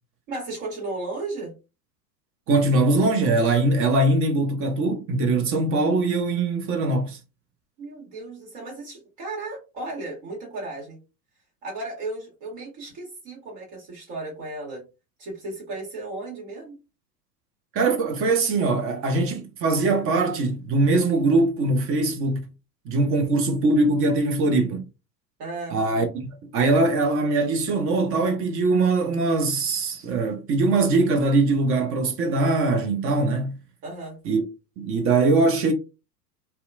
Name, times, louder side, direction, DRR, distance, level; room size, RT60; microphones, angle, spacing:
voice 1, 0.3-1.5 7.8-11.0 11.6-14.8 15.2-16.7 25.4-26.0 33.8-34.2, right 2 dB, 50° right, 1.5 m, -35 dB
voice 2, 2.5-7.2 17.7-22.4 22.9-24.8 25.7-26.1 26.5-33.5 34.2-34.4 34.8-35.7, right 2 dB, 25° right, 0.6 m, -22 dB
2.8 x 2.2 x 2.4 m
hypercardioid pair, 95°, 50 cm